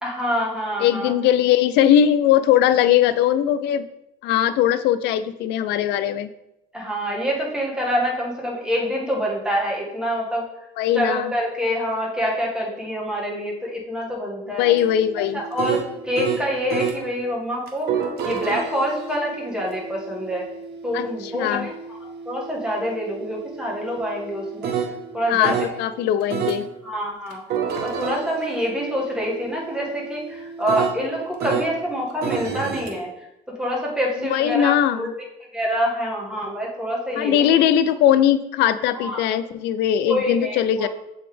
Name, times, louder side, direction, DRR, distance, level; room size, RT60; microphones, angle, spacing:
voice 1, 0.0-1.1 6.7-10.4 10.9-14.7 15.3-17.9 18.2-20.4 20.8-21.7 22.2-24.7 25.1-25.6 26.8-27.4 27.8-33.3 33.6-35.1 35.5-37.6 39.0-39.2 40.0-40.9, equal, 5° right, -3 dB, 1.7 m, -26 dB
voice 2, 0.8-3.9 4.2-6.3 10.8-11.3 14.6-15.4 20.9-21.1 21.3-21.7 25.3-26.6 34.3-35.1 37.2-40.9, left 10 dB, 85° left, 13 dB, 0.4 m, -20 dB
sound 1, 14.6-17.0 17.7-25.8 26.3-26.6 27.3-31.7 32.2-32.9, right 6 dB, 70° right, 0.9 m, -30 dB
7.6 x 4.0 x 3.3 m, 0.87 s
cardioid pair, 110°, 17 cm